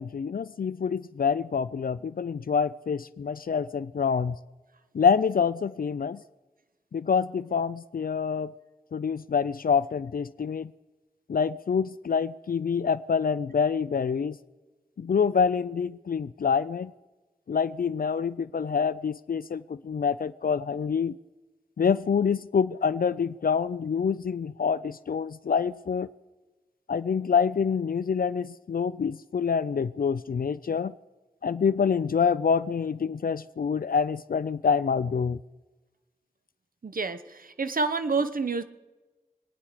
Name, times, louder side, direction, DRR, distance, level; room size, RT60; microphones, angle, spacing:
voice 1, 0.0-4.4 4.9-6.2 6.9-8.5 8.9-10.7 11.3-14.4 15.0-16.9 17.5-21.1 21.8-26.1 26.9-30.9 31.4-35.4, left 6 dB, 70° left, 16 dB, 0.4 m, -26 dB
voice 2, 36.8-38.6, right 4 dB, 65° right, 10 dB, 0.9 m, -28 dB
25.5 x 9.8 x 5.0 m, 1.2 s
wide cardioid pair, 70°, 15 cm